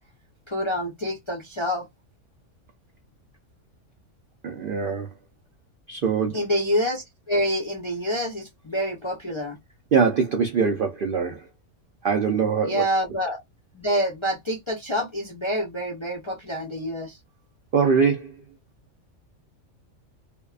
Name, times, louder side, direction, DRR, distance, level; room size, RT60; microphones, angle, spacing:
voice 1, 0.5-1.9 6.3-9.6 12.6-13.4 13.7-17.2, equal, 40° left, 0.4 m, -27 dB
voice 2, 4.4-5.1 5.9-6.5 9.9-11.5 12.0-12.8 17.7-18.3, right 5 dB, 65° right, 0.5 m, -23 dB
2.6 x 2.1 x 2.3 m
omnidirectional pair, 1.4 m